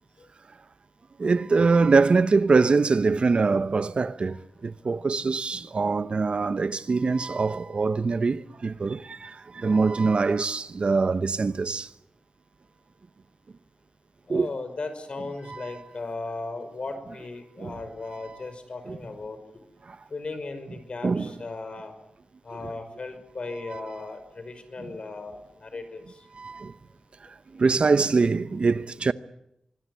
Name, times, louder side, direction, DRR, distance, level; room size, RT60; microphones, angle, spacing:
voice 1, 1.2-11.9 14.3-14.5 15.5-15.7 17.6-17.7 18.9-19.0 19.9-20.0 21.0-21.3 23.7-23.8 26.4-26.7 27.5-29.1, right 4 dB, 55° right, 0.9 m, -23 dB
voice 2, 14.3-19.4 20.1-21.9 22.4-26.2, left 3 dB, 55° left, 5.3 m, -37 dB
25.5 x 20.5 x 9.7 m
wide cardioid pair, 100°, 2 cm